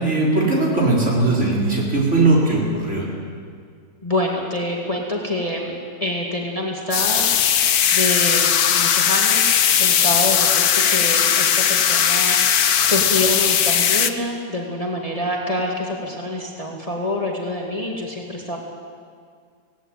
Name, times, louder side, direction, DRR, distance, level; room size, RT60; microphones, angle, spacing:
voice 1, 0.0-3.0, right 2 dB, 50° right, -4 dB, 4.9 m, -19 dB
voice 2, 4.0-7.3 7.9-18.6, left 1 dB, 25° left, -1 dB, 2.2 m, -26 dB
sound 1, 6.9-14.1, left 8 dB, 75° left, 1.4 m, -18 dB
17.5 x 16.5 x 9.3 m, 2.1 s
omnidirectional pair, 1.6 m